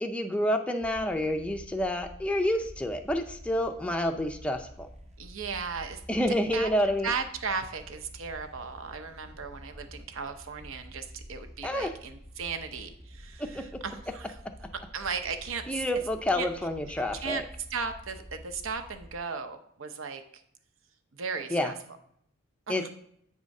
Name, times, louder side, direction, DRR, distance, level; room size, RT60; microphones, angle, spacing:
voice 1, 0.0-4.9 6.1-7.1 11.6-12.0 13.4-13.8 15.7-17.4 21.5-21.7 22.7-22.9, left 1 dB, 5° left, 4 dB, 0.4 m, -29 dB
sound 1, 0.8-19.2, equal, 30° right, 0.7 m, -49 dB
voice 2, 5.2-6.0 6.5-6.7 7.0-14.4 14.9-15.8 16.3-16.5 17.2-17.4 17.7-20.2 21.1-21.7 22.7-22.8, right 5 dB, 70° right, 7 dB, 0.7 m, -36 dB
8.1 x 3.6 x 5.3 m, 0.70 s
head